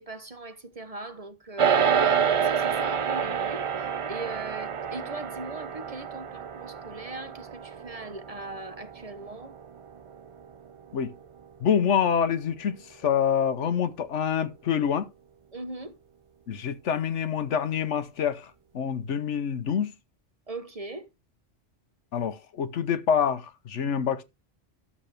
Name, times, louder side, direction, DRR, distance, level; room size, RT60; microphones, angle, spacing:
voice 1, 0.0-9.5 15.5-16.0 20.5-21.1, right 2 dB, 35° right, 1.0 m, -40 dB
sound 1, 1.6-11.1, right 7 dB, 50° right, 0.4 m, -28 dB
voice 2, 11.6-12.8 13.0-15.1 16.5-19.9 22.1-24.2, left 7 dB, 80° left, 1.2 m, -26 dB
12.5 x 7.2 x 3.3 m
omnidirectional pair, 1.2 m